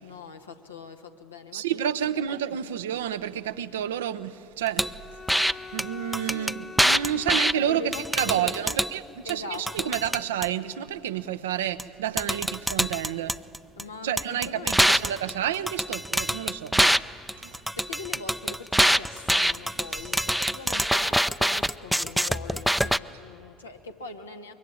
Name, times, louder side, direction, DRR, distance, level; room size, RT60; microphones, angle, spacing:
voice 1, 0.0-2.7 6.2-6.6 7.1-8.9 9.2-10.0 13.8-15.0 17.7-24.5, left 3 dB, 80° left, 1.4 m, -42 dB
voice 2, 1.5-13.4 14.0-16.9 17.3-17.6, right 10 dB, 70° right, 0.7 m, -30 dB
Bowed string instrument, 4.8-8.3, left 5 dB, 25° left, 1.0 m, -44 dB
sound 1, 4.8-4.9 5.3-5.5 5.8-5.9 6.1-7.5 7.9-8.9 9.3-10.5 11.8-11.9 12.2-13.8 14.2-17.0 17.3-23.0, equal, ahead, 0.6 m, -24 dB
24.5 x 23.0 x 9.6 m
figure-of-eight pair, 55°, 0 cm